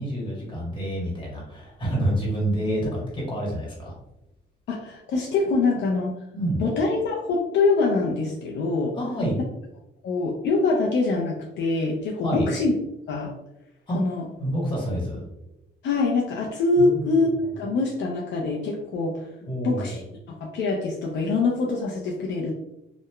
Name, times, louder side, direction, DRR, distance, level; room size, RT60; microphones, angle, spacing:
voice 1, 0.0-3.9 6.3-6.7 9.0-9.4 12.2-12.5 13.9-14.1 14.4-15.2 16.8-17.3 19.4-20.0, right 1 dB, 25° left, -4 dB, 1.2 m, -28 dB
voice 2, 4.7-6.1 6.6-8.9 10.0-12.7 13.1-13.3 13.9-14.2 15.8-17.3 17.5-19.2 19.6-20.0 20.3-22.5, left 3 dB, 65° left, -1 dB, 0.5 m, -24 dB
2.9 x 2.1 x 2.2 m, 0.87 s
cardioid pair, 90°, 20 cm